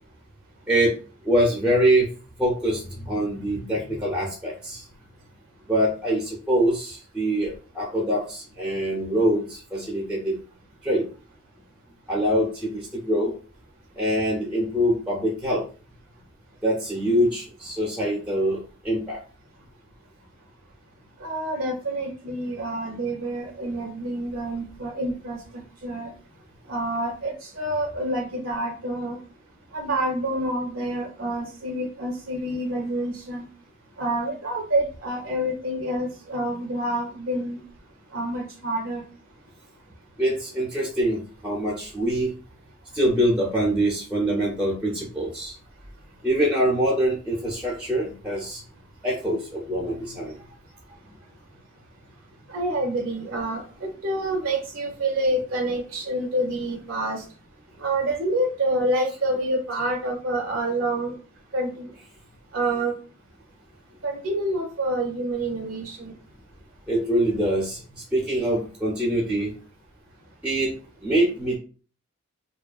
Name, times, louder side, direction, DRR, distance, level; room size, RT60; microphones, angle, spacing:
voice 1, 1.2-2.1 2.4-4.9 5.7-10.4 10.8-11.0 12.1-13.3 14.0-15.6 16.6-19.2 40.2-42.3 42.9-45.5 46.2-48.6 49.0-50.4 66.9-69.5 70.4-70.7 71.0-71.6, right 1 dB, 5° right, -3 dB, 0.4 m, -24 dB
voice 2, 21.2-26.1 26.7-29.2 29.7-33.5 34.0-37.6 38.1-39.0 52.5-57.2 57.8-61.2 61.5-61.9 62.5-62.9 64.0-66.1, right 1 dB, 65° right, 1 dB, 0.5 m, -27 dB
2.5 x 2.2 x 2.3 m, 0.39 s
head